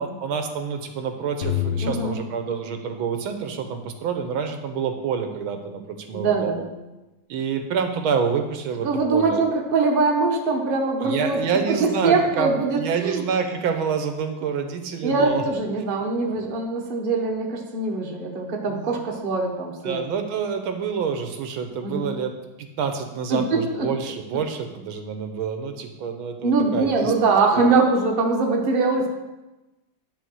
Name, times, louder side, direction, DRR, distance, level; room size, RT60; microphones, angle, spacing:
voice 1, 0.0-6.6 7.3-9.4 11.0-15.4 18.7-19.0 19.8-22.3 22.6-27.1 27.5-27.6, right 6 dB, 80° right, 6 dB, 1.6 m, -27 dB
sound 1, 1.4-3.6, left 9 dB, 55° left, 0.7 m, -29 dB
voice 2, 1.8-2.2 6.1-6.7 8.8-11.4 11.7-13.2 15.0-20.0 21.8-22.1 23.3-23.9 26.4-29.1, right 3 dB, 30° right, 0 dB, 1.1 m, -22 dB
10.5 x 4.3 x 6.1 m, 1.1 s
omnidirectional pair, 2.3 m